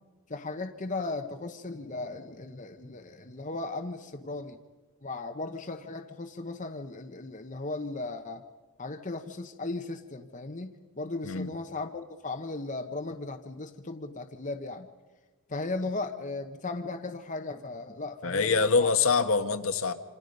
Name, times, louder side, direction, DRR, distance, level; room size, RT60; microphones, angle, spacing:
voice 1, 0.3-4.6 5.0-8.4 8.8-14.9 15.5-18.9, left 2 dB, 35° left, 6 dB, 0.9 m, -36 dB
voice 2, 18.2-19.9, left 4 dB, 70° left, 7 dB, 1.3 m, -25 dB
26.5 x 26.5 x 5.4 m, 1.3 s
head